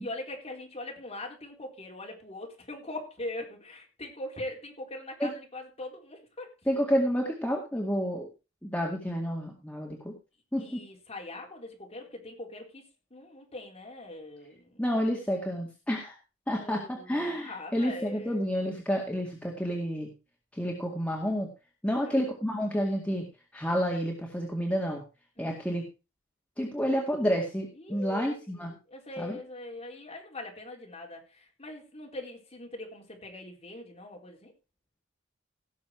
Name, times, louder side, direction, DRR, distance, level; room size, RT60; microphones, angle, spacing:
voice 1, 0.0-6.5 10.6-12.8 13.1-14.8 16.5-18.4 21.9-22.2 25.4-25.7 27.8-34.5, left 2 dB, 30° left, 1 dB, 4.1 m, -42 dB
voice 2, 6.7-8.3 8.6-10.1 10.5-10.8 14.8-16.2 16.5-20.1 20.5-21.5 21.8-23.2 23.5-25.0 25.4-25.8 26.6-28.7 29.2-29.4, equal, 5° left, 0 dB, 2.1 m, -30 dB
17.5 x 6.9 x 4.6 m, 0.30 s
head